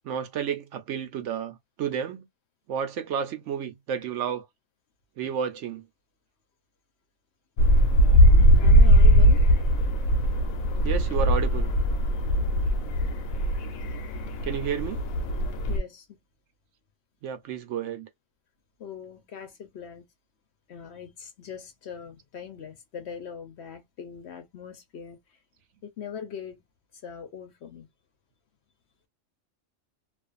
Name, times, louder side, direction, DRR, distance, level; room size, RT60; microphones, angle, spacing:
voice 1, 0.0-2.3 2.7-4.5 5.2-5.8 10.8-11.7 14.4-15.0 17.2-18.1, right 8 dB, 70° right, 0.8 m, -31 dB
sound 1, 7.6-15.8, equal, 85° left, 1.1 m, -20 dB
voice 2, 8.6-9.4 15.7-16.2 18.8-20.0 20.7-25.4 25.8-26.6 26.9-27.9, left 7 dB, 60° left, 0.8 m, -41 dB
2.5 x 2.4 x 2.3 m
omnidirectional pair, 1.4 m